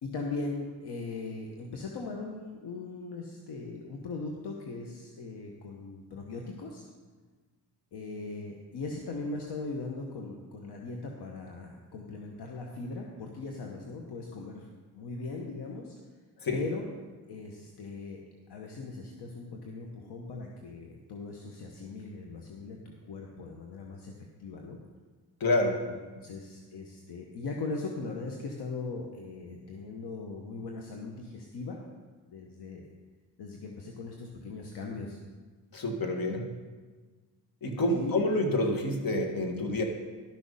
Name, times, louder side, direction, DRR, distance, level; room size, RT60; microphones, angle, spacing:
voice 1, 0.0-6.8 7.9-14.7 14.9-15.9 16.5-16.9 17.3-18.2 18.5-24.1 24.4-24.8 25.9-31.8 32.3-32.9 33.4-35.2 37.9-38.2, left 3 dB, 75° left, 1 dB, 1.2 m, -39 dB
voice 2, 25.4-25.8 35.7-36.4 37.6-39.8, left 1 dB, 55° left, 3 dB, 1.8 m, -28 dB
12.0 x 6.4 x 5.4 m, 1.4 s
cardioid pair, 85°, 40 cm